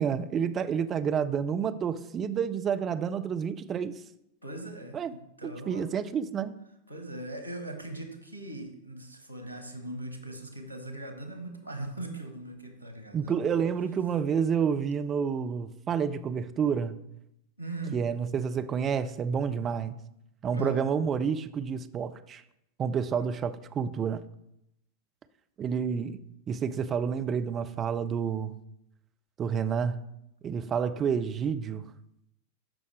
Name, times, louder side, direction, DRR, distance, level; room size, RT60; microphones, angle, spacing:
voice 1, 0.0-4.0 4.9-5.1 5.4-6.5 13.1-17.0 17.9-20.0 20.4-22.4 22.8-24.2 25.6-28.6 29.4-30.0 30.4-31.9, right 7 dB, 25° right, 0.5 m, -29 dB
voice 2, 4.4-5.0 5.4-5.8 6.9-13.6 17.6-18.0 20.5-20.9, right 2 dB, 85° left, 1.2 m, -39 dB
12.0 x 5.3 x 3.3 m
figure-of-eight pair, 90°, 0 cm